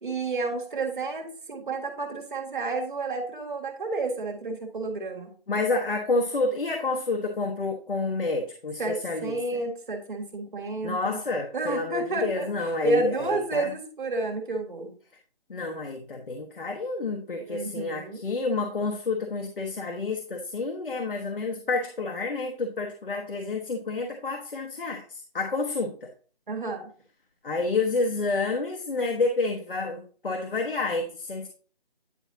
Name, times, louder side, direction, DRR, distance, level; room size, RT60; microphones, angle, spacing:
voice 1, 0.0-5.3 8.8-11.2 11.5-12.5 12.8-14.9 17.4-18.2 26.5-26.9, right 3 dB, 55° right, 1.7 m, -30 dB
voice 2, 5.5-9.4 10.8-13.7 15.5-26.1 27.4-31.5, left 3 dB, 60° left, 1.2 m, -29 dB
9.8 x 5.0 x 2.7 m
figure-of-eight pair, 170°, 30 cm